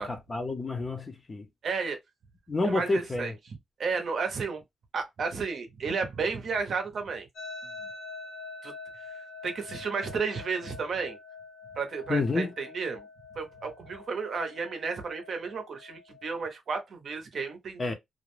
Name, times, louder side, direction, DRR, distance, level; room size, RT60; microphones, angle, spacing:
voice 1, 0.0-1.5 2.5-3.3 12.1-12.5 17.8-17.9, left 2 dB, 20° left, 0.5 m, -29 dB
voice 2, 1.6-2.0 2.6-3.3 3.8-4.6 4.9-7.3 8.6-8.7 9.1-11.2 11.7-13.1 13.3-17.8, right 5 dB, 50° right, 0.7 m, -32 dB
sound 1, 7.3-16.4, left 3 dB, 65° left, 0.9 m, -46 dB
2.4 x 2.1 x 3.0 m
wide cardioid pair, 165°, 0 cm